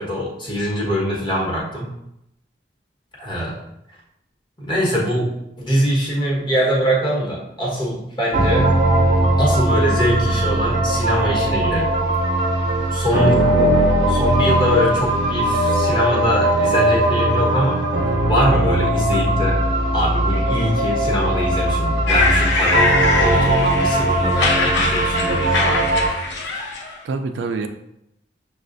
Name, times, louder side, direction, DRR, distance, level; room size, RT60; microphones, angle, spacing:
voice 1, 0.0-1.9 3.2-3.6 4.6-8.7 9.4-12.0 12.9-13.4 14.1-17.9 18.3-19.6 19.9-25.9, equal, 25° left, -4 dB, 1.2 m, -23 dB
sound 1, 8.3-26.1, right 1 dB, 70° right, 0.8 m, -19 dB
voice 2, 13.2-13.8 27.0-27.7, right 3 dB, 85° right, 7 dB, 0.4 m, -25 dB
sound 2, 22.1-27.0, left 3 dB, 80° left, 0.7 m, -22 dB
6.4 x 2.4 x 2.5 m, 0.82 s
head